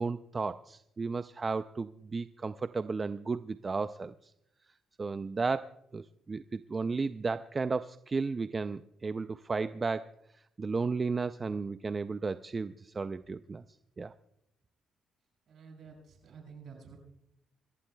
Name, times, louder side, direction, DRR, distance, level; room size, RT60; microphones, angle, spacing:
voice 1, 0.0-4.1 5.0-10.1 10.6-13.6 14.0-14.1, right 4 dB, 30° right, 11 dB, 0.4 m, -34 dB
voice 2, 15.5-17.0, right 5 dB, 60° right, 1 dB, 6.5 m, -50 dB
26.5 x 14.5 x 2.3 m, 0.76 s
cardioid pair, 90°, 0 cm